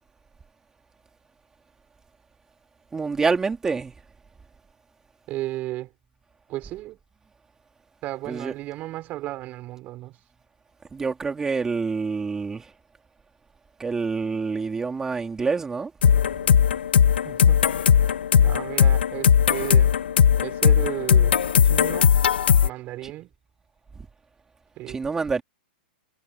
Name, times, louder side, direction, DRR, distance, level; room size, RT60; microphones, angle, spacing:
voice 1, 2.9-3.9 8.2-8.5 10.9-12.6 13.8-15.9 23.0-23.1 24.9-25.4, right 4 dB, 10° right, 3.3 m, -27 dB
voice 2, 5.3-5.9 6.5-7.0 8.0-10.2 17.2-17.6 18.0-19.9 20.4-22.1 22.6-23.3 24.8-25.0, right 16 dB, 30° right, 6.1 m, -34 dB
sound 1, 16.0-22.7, left 8 dB, 85° left, 1.9 m, -18 dB
hypercardioid pair, 150°, 5 cm